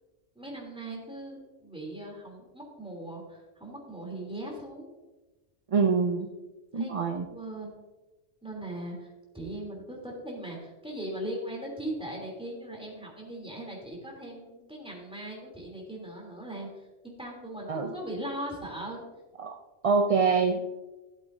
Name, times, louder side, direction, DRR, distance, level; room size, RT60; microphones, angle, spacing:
voice 1, 0.3-4.9 6.7-7.8 8.4-9.1 9.3-19.0 20.5-20.6, right 1 dB, 5° right, -2 dB, 3.1 m, -39 dB
voice 2, 5.7-6.3 6.7-7.2 17.7-17.9 19.4-19.6 19.8-20.6, right 5 dB, 40° right, 4 dB, 0.5 m, -25 dB
16.5 x 7.9 x 2.7 m, 1.1 s
omnidirectional pair, 1.2 m